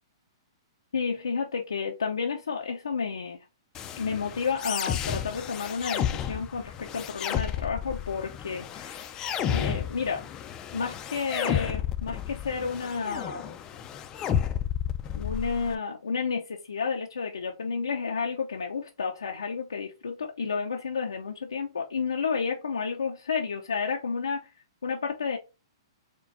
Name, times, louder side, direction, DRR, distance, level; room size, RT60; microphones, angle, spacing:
voice 1, 0.9-3.4 4.0-9.1 9.4-10.3 10.7-13.5 15.1-24.5 24.8-25.4, left 5 dB, 85° left, 0.6 m, -31 dB
sound 1, 3.7-15.7, left 9 dB, 25° left, 0.5 m, -32 dB
4.4 x 2.2 x 4.0 m
hypercardioid pair, 120°, 3 cm